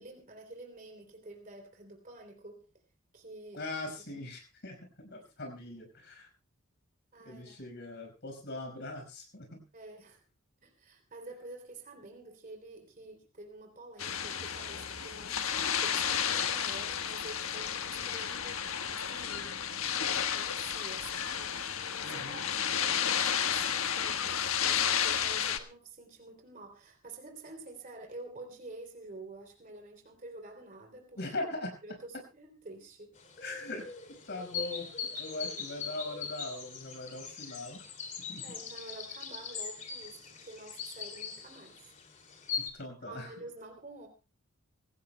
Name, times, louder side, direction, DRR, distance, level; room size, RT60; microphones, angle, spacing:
voice 1, 0.0-2.7 3.1-4.2 7.1-7.7 9.7-10.2 10.6-21.5 22.1-31.2 31.8-33.1 38.4-41.9 43.0-44.1, right 2 dB, 40° right, 4 dB, 3.2 m, -49 dB
voice 2, 3.5-6.3 7.3-9.6 22.0-22.5 31.2-31.7 33.4-33.9 34.3-37.8 38.3-38.4 42.6-43.3, left 2 dB, 55° left, 4 dB, 5.3 m, -41 dB
sound 1, 14.0-25.6, left 8 dB, 80° left, 1.3 m, -32 dB
sound 2, 33.2-42.7, left 6 dB, 35° left, 2.7 m, -41 dB
24.0 x 17.0 x 2.2 m, 0.32 s
head